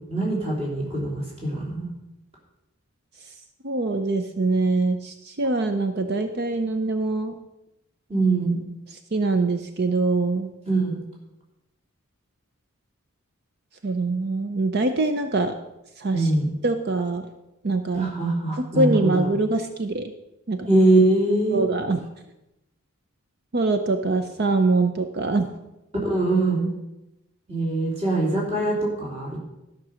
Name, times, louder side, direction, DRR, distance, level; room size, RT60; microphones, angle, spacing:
voice 1, 0.1-1.9 8.1-8.6 10.7-11.0 16.1-16.5 17.9-19.2 20.7-21.6 26.0-26.7 27.5-29.4, right 2 dB, 30° right, -4 dB, 3.0 m, -22 dB
voice 2, 3.6-7.3 9.1-10.5 13.8-15.5 16.0-16.3 16.6-17.2 17.6-18.1 18.8-20.1 20.5-20.7 21.5-22.0 23.5-25.5, right 3 dB, 50° right, 8 dB, 0.6 m, -23 dB
12.5 x 6.0 x 6.2 m, 0.93 s
head